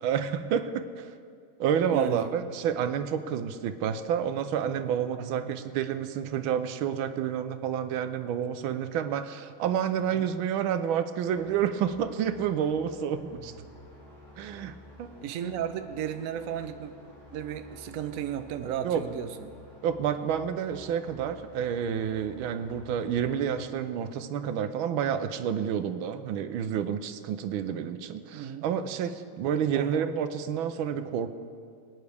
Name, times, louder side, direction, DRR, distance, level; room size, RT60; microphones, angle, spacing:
voice 1, 0.0-1.1 1.6-13.5 14.4-15.1 18.8-19.0 19.8-31.3, right 8 dB, 85° right, 10 dB, 1.5 m, -29 dB
voice 2, 1.9-2.3 5.2-5.5 10.1-10.3 13.3-13.5 15.2-16.9 17.3-19.3 28.3-28.7 29.7-30.1, right 9 dB, 65° right, 8 dB, 0.8 m, -34 dB
sound 1, 11.3-23.3, left 1 dB, 10° left, 3.6 m, -52 dB
23.0 x 9.4 x 3.4 m, 2.2 s
omnidirectional pair, 2.2 m